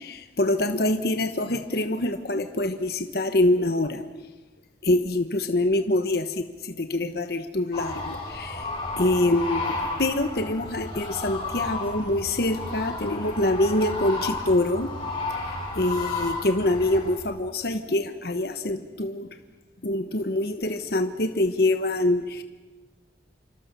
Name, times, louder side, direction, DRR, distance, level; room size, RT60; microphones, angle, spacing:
voice 1, 0.0-4.0 4.8-8.7 9.0-14.9 15.7-19.3 19.8-22.4, left 1 dB, 60° left, 8 dB, 1.2 m, -25 dB
sound 1, 7.7-17.2, left 2 dB, 30° left, 7.2 m, -32 dB
28.5 x 25.5 x 6.9 m, 1.3 s
head